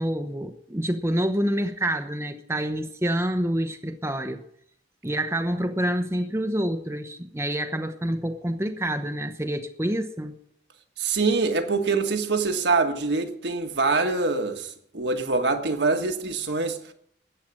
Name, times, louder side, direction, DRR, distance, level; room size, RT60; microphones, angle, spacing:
voice 1, 0.0-4.4 5.0-10.4, right 1 dB, 15° right, 0.9 m, -27 dB
voice 2, 11.0-16.9, right 3 dB, 65° right, 1.6 m, -24 dB
14.0 x 9.1 x 8.8 m
head